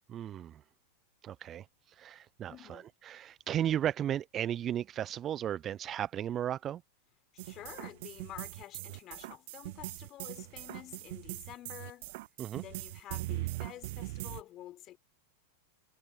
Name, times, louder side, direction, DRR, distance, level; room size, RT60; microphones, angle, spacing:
voice 1, 0.1-0.6 1.2-6.8 12.4-12.6, right 10 dB, 30° right, 0.7 m, -35 dB
voice 2, 2.5-2.9 7.3-12.2 12.5-15.0, left 14 dB, 35° left, 5.5 m, -49 dB
sound 1, 7.4-14.4, right 21 dB, 50° right, 0.3 m, -41 dB
figure-of-eight pair, 90°, 0 cm